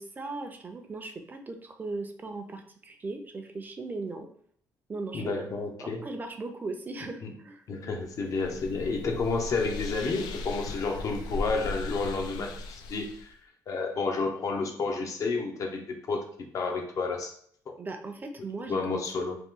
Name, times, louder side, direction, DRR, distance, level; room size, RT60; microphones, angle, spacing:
voice 1, 0.0-4.3 4.9-5.5 5.8-7.6 17.8-19.3, right 3 dB, 25° right, 5 dB, 0.6 m, -38 dB
voice 2, 5.1-6.1 7.2-7.3 7.7-13.3 13.7-16.2 16.5-17.3 18.7-19.4, left 4 dB, 55° left, 3 dB, 0.7 m, -30 dB
sound 1, 8.0-13.3, left 2 dB, 80° left, 0.4 m, -38 dB
3.0 x 2.3 x 3.6 m, 0.62 s
cardioid pair, 90°, 7 cm